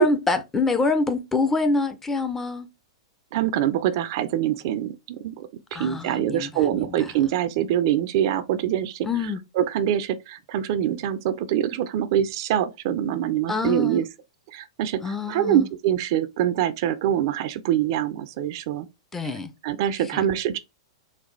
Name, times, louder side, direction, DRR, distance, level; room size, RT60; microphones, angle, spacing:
voice 1, 0.0-2.7 5.7-7.1 9.0-9.4 13.5-14.0 15.0-15.7 19.1-19.5 20.1-20.3, left 3 dB, 10° left, 0.6 m, -26 dB
voice 2, 3.3-9.1 9.6-14.0 14.5-18.9 19.6-20.6, right 11 dB, 55° right, 0.5 m, -24 dB
4.0 x 2.4 x 3.2 m
hypercardioid pair, 110°, 3 cm